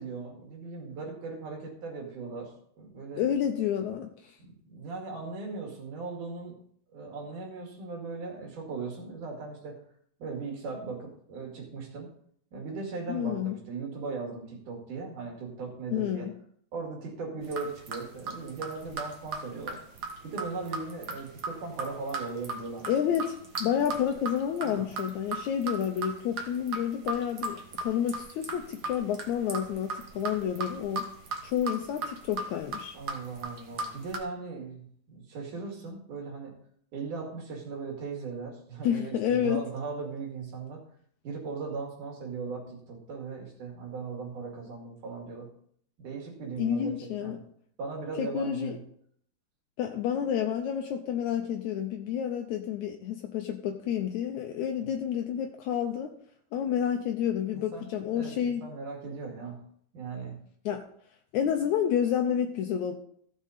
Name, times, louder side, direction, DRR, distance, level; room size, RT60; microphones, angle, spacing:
voice 1, 0.0-3.3 4.4-6.6 6.9-9.8 10.2-12.1 12.5-16.3 16.7-19.8 20.2-22.9 24.6-24.9 32.9-36.6 36.9-40.8 41.2-45.5 46.0-47.4 47.8-48.8 54.8-54.9 57.5-57.9 58.1-59.6 59.9-60.4, right 4 dB, 75° right, 1 dB, 3.7 m, -38 dB
voice 2, 3.2-4.4 13.1-13.6 15.9-16.3 22.9-31.1 31.4-33.0 38.8-39.6 46.6-47.4 48.2-48.8 49.8-56.1 56.5-58.7 60.7-60.8 61.3-62.9, left 9 dB, 75° left, 4 dB, 2.0 m, -29 dB
sound 1, 17.4-34.2, right 3 dB, 55° right, 1.1 m, -37 dB
15.0 x 6.4 x 4.1 m, 0.64 s
omnidirectional pair, 3.6 m